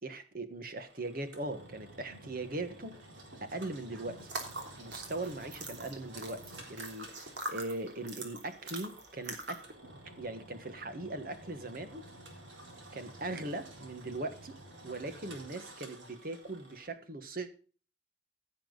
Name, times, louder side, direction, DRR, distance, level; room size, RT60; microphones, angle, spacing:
voice 1, 0.0-3.0 3.4-4.3 4.8-9.6 10.2-12.0 12.9-14.5 14.8-17.5, right 2 dB, 50° right, 9 dB, 1.5 m, -40 dB
Engine, 0.8-16.9, right 1 dB, 85° right, 3.9 m, -52 dB
sound 1, 4.2-9.7, right 2 dB, 65° right, 3.0 m, -43 dB
16.0 x 7.4 x 3.9 m, 0.40 s
head